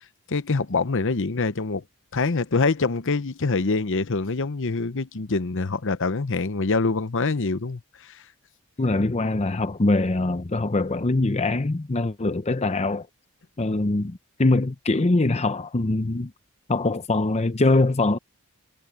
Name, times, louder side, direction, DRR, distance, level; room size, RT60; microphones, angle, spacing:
voice 1, 0.3-1.8 2.1-8.2, left 3 dB, 60° left, 0.9 m, -25 dB
voice 2, 8.8-13.1 13.6-16.3 16.7-18.2, left 2 dB, 30° left, 0.7 m, -23 dB
head